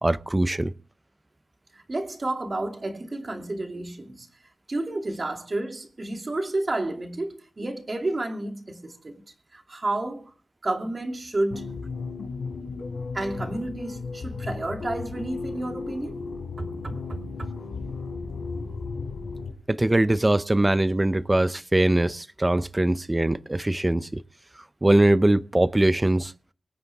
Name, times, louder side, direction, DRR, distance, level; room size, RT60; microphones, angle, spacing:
voice 1, 0.0-0.7 19.7-24.2 24.8-26.3, right 1 dB, 15° right, 0.6 m, -22 dB
voice 2, 1.7-4.3 4.7-9.1 9.5-10.3 10.6-11.7 13.1-16.2 16.6-17.5, right 2 dB, 30° right, 2.6 m, -31 dB
sound 1, 11.5-19.5, left 4 dB, 75° left, 3.5 m, -35 dB
24.5 x 9.5 x 3.5 m
wide cardioid pair, 140°, 0 cm